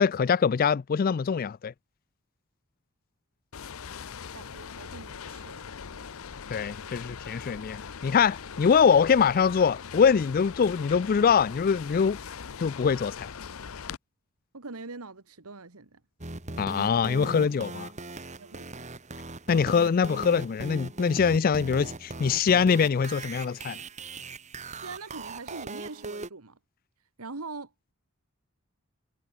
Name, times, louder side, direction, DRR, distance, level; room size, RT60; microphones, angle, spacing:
voice 1, 0.0-1.7 6.5-12.2 12.6-13.3 16.6-17.9 19.5-23.8, left 6 dB, 40° left, 0.3 m, -23 dB
sound 1, 3.5-14.0, left 6 dB, 65° left, 0.7 m, -41 dB
voice 2, 4.3-6.0 14.5-16.0 18.4-18.8 24.8-26.6 27.2-27.7, right 3 dB, 75° right, 1.6 m, -43 dB
sound 2, 16.2-26.3, right 2 dB, 30° right, 2.1 m, -40 dB
head